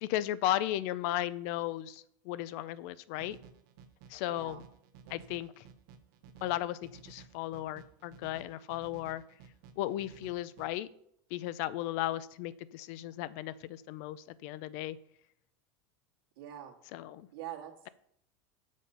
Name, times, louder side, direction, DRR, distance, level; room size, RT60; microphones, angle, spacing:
voice 1, 0.0-3.4 4.1-4.6 5.1-5.6 6.4-9.2 9.8-10.9 11.3-15.0 16.9-17.3, left 14 dB, 45° left, 18 dB, 0.4 m, -35 dB
sound 1, 3.2-10.7, right 7 dB, 55° right, 0.8 m, -55 dB
voice 2, 4.3-4.6 5.0-5.1 16.4-16.8 17.3-17.9, right 11 dB, 90° right, 0 dB, 2.0 m, -44 dB
7.0 x 6.2 x 5.5 m, 0.70 s
supercardioid pair, 180°, 12 cm